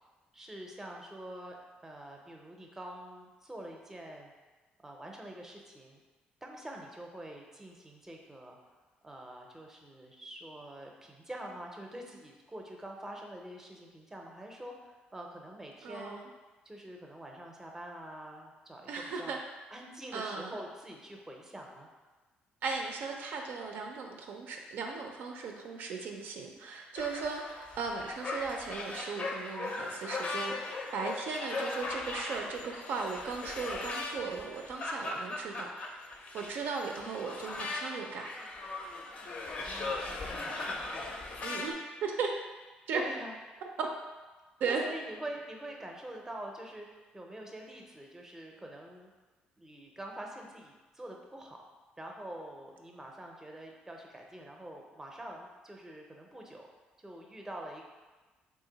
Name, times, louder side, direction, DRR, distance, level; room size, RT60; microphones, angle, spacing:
voice 1, 0.3-1.6 1.8-4.3 4.8-6.0 6.4-8.7 9.0-16.2 16.6-18.9 19.2-19.4 19.7-21.9 39.6-41.2 42.9-43.4 44.7-49.1 49.6-51.6 52.0-56.7 57.0-57.8, right 1 dB, 10° right, 1 dB, 0.5 m, -45 dB
voice 2, 15.8-16.3 18.9-19.4 20.1-20.5 22.6-35.7 36.1-38.3 41.4-41.7 42.0-42.3 42.9-43.0 43.8-43.9 44.6-44.8, right 5 dB, 70° right, 2 dB, 0.4 m, -37 dB
sound 1, 27.0-41.7, left 2 dB, 45° left, 0.5 m, -39 dB
2.9 x 2.5 x 3.9 m, 1.2 s
cardioid pair, 100°, 3 cm